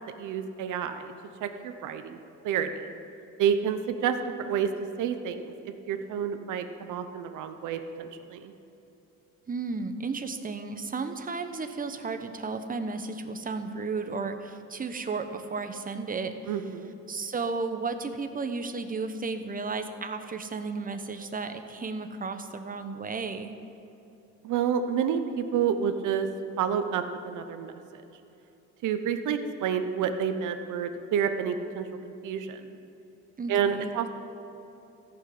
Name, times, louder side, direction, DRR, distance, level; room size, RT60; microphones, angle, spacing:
voice 1, 0.2-1.1 1.4-2.2 2.4-2.7 3.4-4.7 5.0-5.4 5.9-8.5 16.5-16.9 24.4-26.3 26.6-28.0 28.8-32.6 33.5-34.1, right 8 dB, 85° right, 8 dB, 0.9 m, -29 dB
voice 2, 9.5-16.6 17.1-23.6 33.4-33.9, right 4 dB, 30° right, 7 dB, 1.0 m, -33 dB
14.5 x 6.0 x 7.7 m, 2.9 s
cardioid pair, 90°, 30 cm